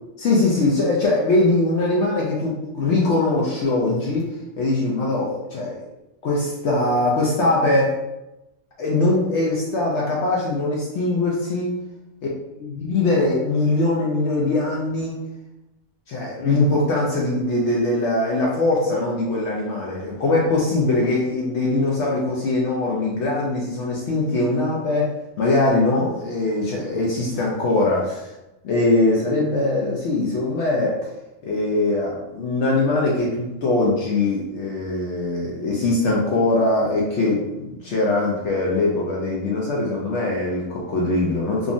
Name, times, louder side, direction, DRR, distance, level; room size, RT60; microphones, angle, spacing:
voice 1, 0.2-4.3 4.6-5.8 6.2-8.0 8.8-11.7 12.6-15.1 16.1-25.1 25.4-28.3 28.6-31.0 31.4-41.7, left 2 dB, 65° left, -3 dB, 0.7 m, -21 dB
3.6 x 2.0 x 2.5 m, 0.95 s
omnidirectional pair, 1.6 m